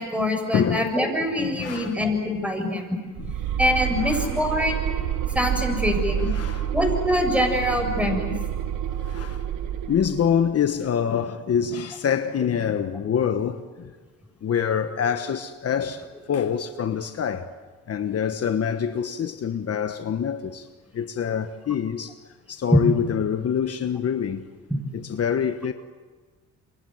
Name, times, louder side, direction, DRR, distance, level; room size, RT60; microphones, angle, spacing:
voice 1, 0.0-2.9 3.6-4.9 5.3-6.3 6.7-8.3 24.7-24.8, left 1 dB, 5° right, 7.5 m, -24 dB
voice 2, 0.5-0.9 1.4-2.0 3.2-3.3 4.0-4.3 6.2-6.7 8.9-9.5 9.9-13.9 14.4-17.5 17.9-20.7 20.9-22.2 22.5-24.5 24.9-25.7, left 8 dB, 50° left, 1.3 m, -26 dB
sound 1, 3.2-10.4, right 10 dB, 85° right, 1.4 m, -28 dB
28.5 x 24.5 x 7.9 m
cardioid pair, 90°, 30 cm